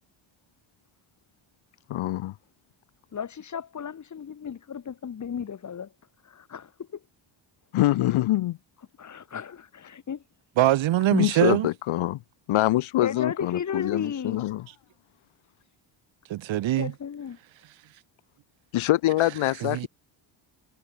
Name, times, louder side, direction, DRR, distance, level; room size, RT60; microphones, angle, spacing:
voice 1, 1.9-2.3 7.7-8.6 11.1-12.2 12.5-14.6 18.7-19.9, left 15 dB, 75° left, 1.4 m, -24 dB
voice 2, 3.1-5.9 6.2-7.0 9.0-10.2 13.0-14.4 16.8-17.4, left 7 dB, 35° left, 3.6 m, -34 dB
voice 3, 10.6-11.7 16.3-16.9 19.6-19.9, right 14 dB, 65° right, 1.5 m, -23 dB
cardioid pair, 165°, 49 cm